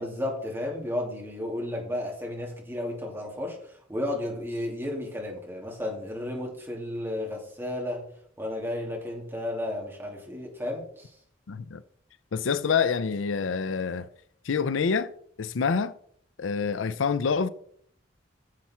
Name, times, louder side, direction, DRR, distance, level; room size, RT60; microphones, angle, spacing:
voice 1, 0.0-8.1 8.4-11.1, left 1 dB, 10° right, 2.8 m, -33 dB
voice 2, 11.5-11.8 12.3-14.1 14.4-15.1 15.4-15.9 16.4-17.5, left 5 dB, 85° left, 0.5 m, -26 dB
9.8 x 7.3 x 4.4 m
head